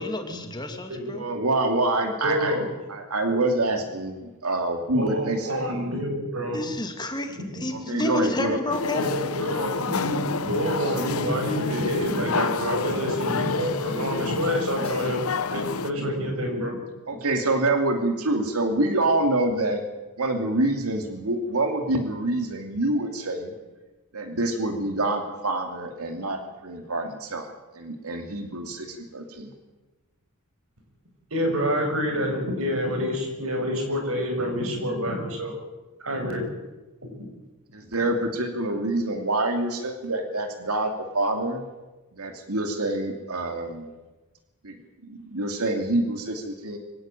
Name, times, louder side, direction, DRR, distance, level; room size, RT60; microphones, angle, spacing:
voice 1, 0.0-1.3 6.5-9.1, left 1 dB, 20° left, 5 dB, 2.6 m, -30 dB
voice 2, 1.1-2.6 2.9-5.7 7.7-8.6 17.1-19.8 20.2-23.5 24.1-27.5 27.7-29.5 37.7-41.6 42.2-43.9 44.6-44.8 45.0-46.8, right 2 dB, 90° right, 5 dB, 2.7 m, -26 dB
voice 3, 2.2-2.7 4.9-6.6 7.4-7.5 8.9-15.2 15.5-16.7 31.3-35.5 36.0-36.4 37.0-37.3, equal, 65° right, 4 dB, 6.7 m, -27 dB
sound 1, 8.7-15.9, left 4 dB, 75° left, 1.1 m, -29 dB
24.5 x 17.0 x 9.1 m, 1.2 s
head